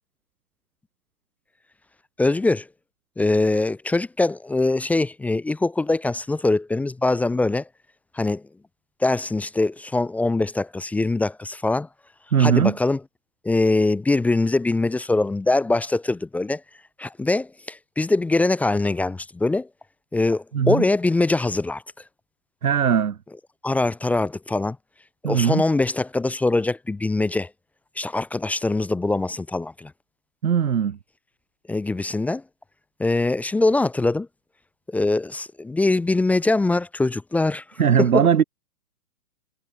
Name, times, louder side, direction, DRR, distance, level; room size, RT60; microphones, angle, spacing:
voice 1, 2.2-2.7 3.2-7.6 8.1-8.4 9.0-11.9 12.4-13.0 13.4-16.6 17.0-19.7 20.1-21.8 23.6-24.8 25.2-27.5 28.0-29.9 31.7-32.4 33.0-34.3 34.9-37.6 38.0-38.2, left 2 dB, 5° left, 0.8 m, -22 dB
voice 2, 12.3-12.7 20.5-20.8 22.6-23.2 25.2-25.6 30.4-31.0 37.8-38.4, right 8 dB, 65° right, 2.6 m, -19 dB
figure-of-eight pair, 125°, 46 cm